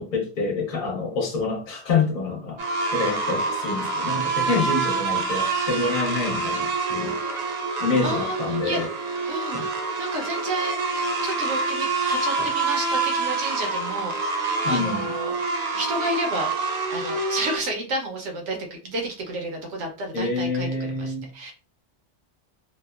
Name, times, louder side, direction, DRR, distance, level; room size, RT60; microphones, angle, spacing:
voice 1, 0.0-2.6 2.9-7.2 7.8-8.9 9.5-9.7 12.4-12.5 14.6-15.1 20.1-21.3, left 4 dB, 50° left, 0 dB, 0.9 m, -27 dB
sound 1, 2.6-17.6, right 3 dB, 65° right, 0.8 m, -26 dB
voice 2, 8.0-8.8 9.3-9.7 10.0-15.4 15.7-16.5 16.9-18.6 18.8-21.5, right 1 dB, 90° right, 2 dB, 1.0 m, -31 dB
2.8 x 2.1 x 2.2 m, 0.37 s
omnidirectional pair, 1.2 m